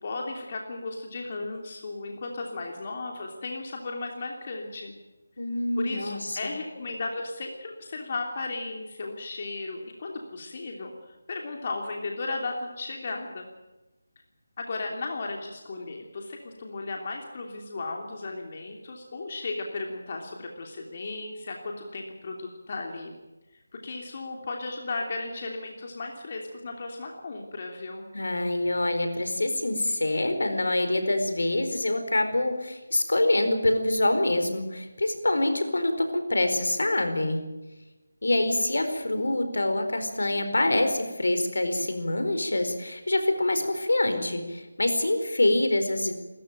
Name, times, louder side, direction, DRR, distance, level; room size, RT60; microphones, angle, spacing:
voice 1, 0.0-5.0 5.8-13.5 14.6-23.1 23.7-28.0, left 3 dB, 40° left, 2 dB, 2.9 m, -35 dB
voice 2, 5.4-6.5 28.1-37.4 38.2-46.1, left 1 dB, 70° left, 7 dB, 4.4 m, -25 dB
28.5 x 14.5 x 9.1 m, 1.1 s
figure-of-eight pair, 160°, 0 cm